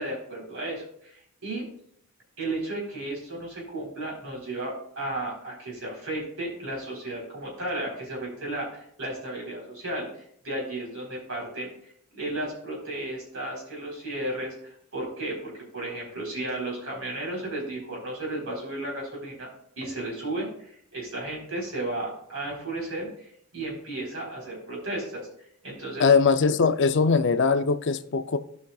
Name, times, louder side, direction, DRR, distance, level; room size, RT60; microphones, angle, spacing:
voice 1, 0.0-1.6 2.4-19.5 19.8-23.3 23.5-25.3 25.6-26.1, right 1 dB, 65° right, -2 dB, 4.0 m, -34 dB
voice 2, 26.0-28.4, left 5 dB, 55° left, 10 dB, 0.5 m, -21 dB
16.5 x 5.8 x 2.4 m, 0.68 s
head